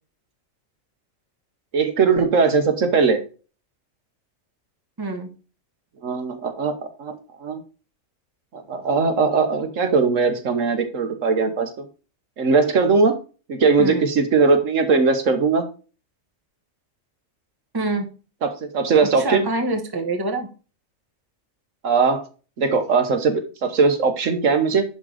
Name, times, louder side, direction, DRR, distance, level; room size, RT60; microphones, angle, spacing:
voice 1, 1.7-3.2 6.0-7.6 8.5-11.8 12.4-13.2 13.5-15.6 18.4-19.4 21.8-22.2 22.6-24.8, right 4 dB, 70° right, 6 dB, 1.5 m, -20 dB
voice 2, 5.0-5.3 13.8-14.1 17.7-18.1 19.1-20.5, right 2 dB, 15° right, 4 dB, 1.2 m, -26 dB
11.0 x 3.9 x 4.9 m, 0.35 s
omnidirectional pair, 1.4 m